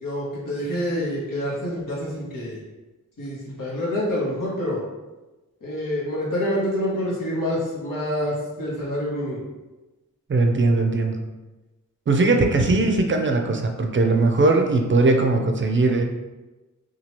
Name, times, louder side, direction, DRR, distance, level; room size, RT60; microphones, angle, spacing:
voice 1, 0.0-2.6 3.2-4.8 5.6-9.4, left 1 dB, 90° left, -6 dB, 1.0 m, -27 dB
voice 2, 10.3-11.2 12.1-16.0, right 3 dB, 40° right, 3 dB, 0.4 m, -19 dB
2.9 x 2.3 x 3.0 m, 1.1 s
cardioid pair, 65°, 32 cm